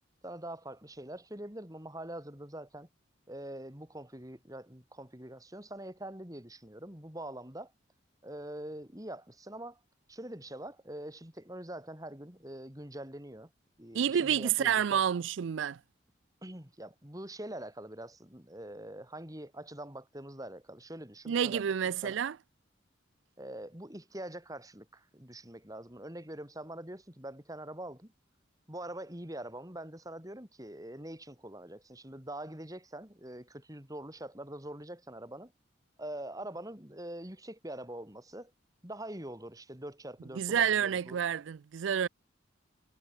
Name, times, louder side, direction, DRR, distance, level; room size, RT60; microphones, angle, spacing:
voice 1, 0.2-2.9 3.3-7.7 8.2-9.8 10.1-13.5 13.8-15.0 16.4-21.7 22.0-22.2 23.4-28.1 28.7-35.5 36.0-38.5 38.8-41.2, right 1 dB, 20° right, 3.9 m, -44 dB
voice 2, 13.9-15.8 21.3-22.4 40.4-42.1, right 8 dB, 70° right, 0.4 m, -29 dB
head